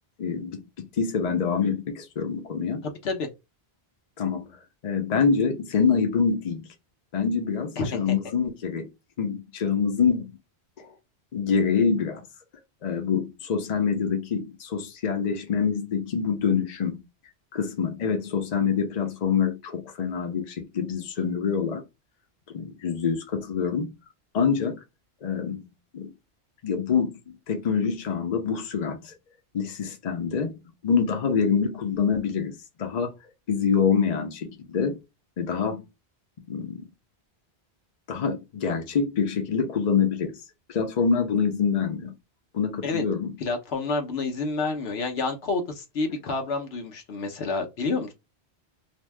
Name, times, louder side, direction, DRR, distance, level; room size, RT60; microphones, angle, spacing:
voice 1, 0.2-2.8 4.2-4.5 4.8-6.7 7.1-8.9 9.2-10.3 10.8-10.9 11.3-12.2 12.8-17.0 17.5-21.8 22.5-23.9 24.3-24.8 25.2-25.6 25.9-26.1 26.6-29.1 29.5-30.5 30.8-33.1 33.5-35.0 35.4-35.8 36.5-36.8 38.1-40.3 40.7-42.1 42.5-43.3, left 6 dB, 45° left, 0.7 m, -26 dB
voice 2, 2.8-3.3 7.8-8.1 42.8-43.0 43.4-48.1, left 3 dB, 70° left, 1.0 m, -29 dB
2.6 x 2.2 x 3.3 m
omnidirectional pair, 1.1 m